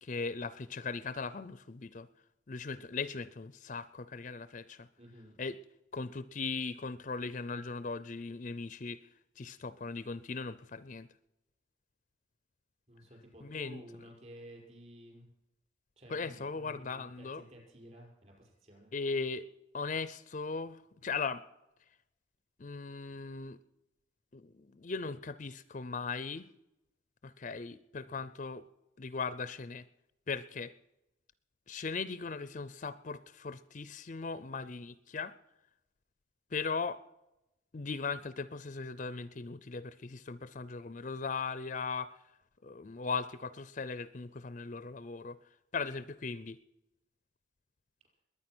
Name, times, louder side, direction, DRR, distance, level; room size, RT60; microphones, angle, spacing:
voice 1, 0.0-2.1 2.5-4.9 5.4-5.6 5.9-9.0 9.4-11.1 13.4-13.8 16.1-17.4 18.9-19.5 19.7-21.4 22.6-23.6 24.3-26.5 27.2-28.6 29.0-29.8 30.3-30.7 31.7-35.3 36.5-37.0 37.7-42.2 42.6-45.4 45.7-46.6, left 4 dB, 40° left, 15 dB, 0.5 m, -38 dB
voice 2, 5.0-5.4 12.9-15.3 16.0-18.9 28.1-28.3, equal, 35° right, 0 dB, 5.6 m, -53 dB
21.5 x 9.5 x 6.1 m, 0.92 s
head